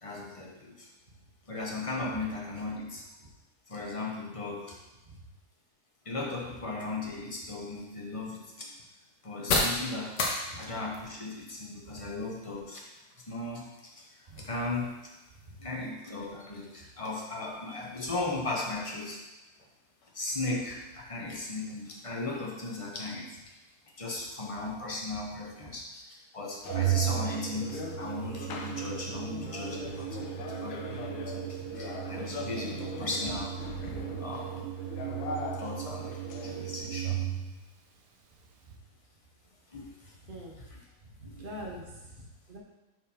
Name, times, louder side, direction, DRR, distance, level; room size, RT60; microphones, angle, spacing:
voice 1, 0.0-0.9 1.5-3.0 3.7-4.7 6.0-8.7 9.2-10.2 10.6-12.8 13.3-14.1 14.4-14.9 15.6-19.2 20.1-23.4 24.0-26.0 26.3-33.6 33.8-34.7 35.6-36.2 36.4-37.2 39.7-40.1 40.6-40.8 41.3-41.5, left 2 dB, 25° left, -2 dB, 0.8 m, -37 dB
sound 1, 7.4-25.0, left 2 dB, 65° left, 1.6 m, -40 dB
sound 2, 26.6-36.5, left 4 dB, 90° left, 1.5 m, -41 dB
Organ, 26.7-37.7, right 12 dB, 75° right, 1.1 m, -35 dB
voice 2, 41.2-42.2 42.5-42.6, equal, 30° right, -2 dB, 1.2 m, -43 dB
6.3 x 4.8 x 4.3 m, 1.1 s
omnidirectional pair, 2.1 m